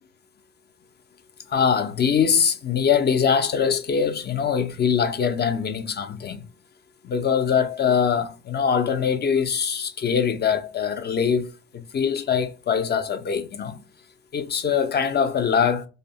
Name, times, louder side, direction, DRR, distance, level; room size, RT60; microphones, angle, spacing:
voice 1, 1.5-6.4 7.0-13.8 14.3-15.9, left 7 dB, 35° left, 0.4 m, -23 dB
2.7 x 2.0 x 2.7 m
cardioid pair, 90°, 30 cm